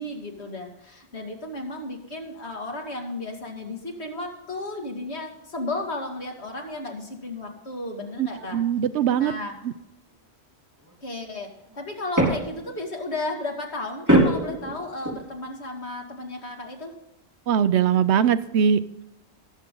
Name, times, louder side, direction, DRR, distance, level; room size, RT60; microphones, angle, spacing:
voice 1, 0.0-8.6 9.2-9.5 11.0-11.5 11.8-16.9, left 2 dB, 75° left, 1 dB, 2.6 m, -34 dB
voice 2, 8.2-9.3 9.6-9.7 17.5-19.0, right 8 dB, 85° right, 14 dB, 0.9 m, -22 dB
sound 1, 10.8-10.9 11.6-12.8 14.1-15.3, right 1 dB, 15° right, 4.3 m, -22 dB
18.5 x 8.0 x 3.8 m, 0.85 s
omnidirectional pair, 1.1 m